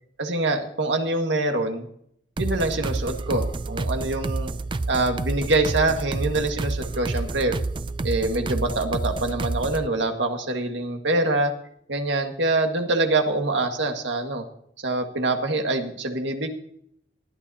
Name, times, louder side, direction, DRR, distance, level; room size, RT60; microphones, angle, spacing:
voice 1, 0.2-1.9 2.4-4.5 4.9-7.6 8.0-11.5 11.9-14.4 14.8-16.5, right 2 dB, 85° right, 4 dB, 1.8 m, -25 dB
sound 1, 2.4-9.9, right 2 dB, 25° right, 0.4 m, -29 dB
19.0 x 12.5 x 2.8 m, 0.69 s
head